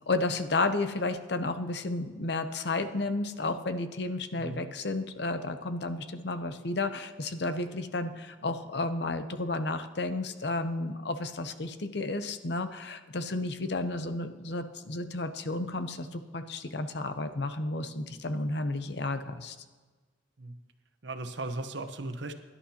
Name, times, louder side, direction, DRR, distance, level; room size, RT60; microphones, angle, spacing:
voice 1, 0.1-19.6, left 2 dB, 60° left, 9 dB, 0.7 m, -32 dB
voice 2, 4.3-4.7 20.4-20.5 21.0-22.3, right 2 dB, 70° right, 7 dB, 1.0 m, -37 dB
22.5 x 11.0 x 2.9 m, 1.4 s
head